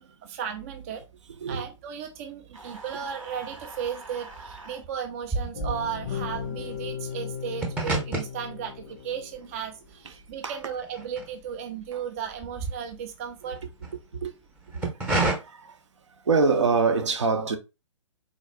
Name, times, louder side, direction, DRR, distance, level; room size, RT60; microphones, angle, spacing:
voice 1, 0.2-1.0 1.5-13.6, right 8 dB, 30° right, 0.4 m, -35 dB
sound 1, 2.5-3.3 3.5-11.9 12.2-13.9 14.5-15.3, right 2 dB, 10° right, 0.8 m, -32 dB
sound 2, 2.5-4.8, right 2 dB, 80° right, 1.0 m, -44 dB
sound 3, 5.5-9.8, left 7 dB, 35° left, 0.4 m, -36 dB
voice 2, 14.7-15.8 16.2-17.6, right 4 dB, 65° right, 0.6 m, -25 dB
3.7 x 2.3 x 3.2 m
figure-of-eight pair, 125°, 17 cm